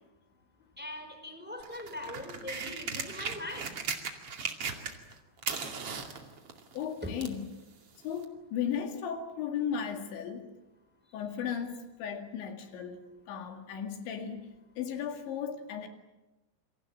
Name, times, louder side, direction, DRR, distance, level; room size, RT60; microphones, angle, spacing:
voice 1, 0.8-3.7 7.0-7.1, left 1 dB, ahead, 5 dB, 4.4 m, -41 dB
sound 1, 1.6-5.1 5.4-7.4 8.2-8.3, right 5 dB, 40° right, 2.6 m, -37 dB
voice 2, 6.8-7.5 8.0-10.5 11.1-13.0 13.3-15.9, left 8 dB, 80° left, 5 dB, 4.4 m, -36 dB
28.0 x 24.5 x 7.6 m, 1.0 s
omnidirectional pair, 5.2 m